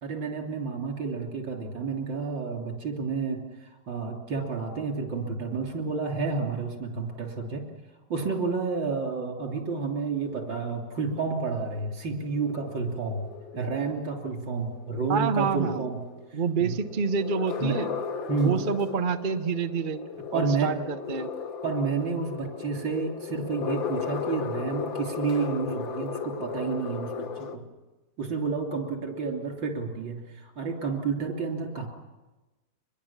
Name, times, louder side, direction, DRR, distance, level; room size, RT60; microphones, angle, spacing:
voice 1, 0.0-7.6 8.1-13.3 13.5-16.0 16.3-16.7 17.6-17.8 18.3-18.6 20.3-20.7 21.6-27.6 28.2-31.9, right 4 dB, 70° right, 2 dB, 3.9 m, -30 dB
sound 1, 10.2-27.6, left 6 dB, 75° left, 2.1 m, -36 dB
voice 2, 15.1-15.8 16.3-17.9 18.4-20.0 20.3-21.3, right 5 dB, 35° right, 8 dB, 0.8 m, -27 dB
25.0 x 21.5 x 7.3 m, 1.1 s
omnidirectional pair, 2.1 m